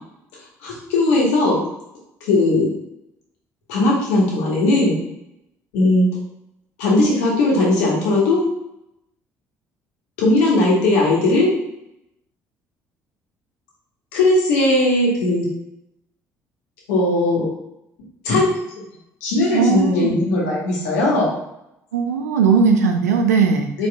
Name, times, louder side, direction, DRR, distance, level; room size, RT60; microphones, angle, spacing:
voice 1, 0.6-1.6 2.2-2.7 3.7-5.0 5.7-6.2 6.8-8.5 10.2-11.6 14.1-15.5 16.9-17.5 18.2-18.6 19.2-21.3 23.8-23.9, left 2 dB, 75° left, -4 dB, 1.4 m, -18 dB
voice 2, 19.5-20.1 21.9-23.7, right 5 dB, 90° right, 5 dB, 0.5 m, -18 dB
4.5 x 4.1 x 2.4 m, 0.84 s
hypercardioid pair, 55°, 8 cm